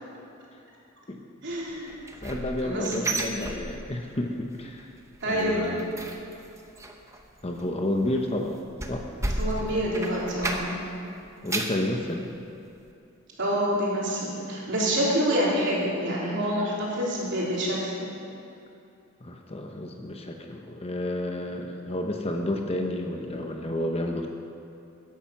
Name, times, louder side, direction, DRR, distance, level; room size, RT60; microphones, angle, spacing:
voice 1, 1.4-1.9 2.6-2.9 5.2-5.7 9.4-10.8 13.4-18.1, equal, 55° right, -5 dB, 3.5 m, -27 dB
sound 1, 1.9-4.2 4.5-4.8 5.1-10.9 11.3-11.9 12.4-12.5 12.9-13.0, right 2 dB, 15° right, 0.9 m, -34 dB
voice 2, 2.2-4.9 5.2-5.9 7.4-8.6 8.9-9.8 11.4-12.3 19.2-24.3, left 1 dB, 25° left, 2 dB, 0.9 m, -31 dB
15.0 x 10.5 x 5.9 m, 2.6 s
head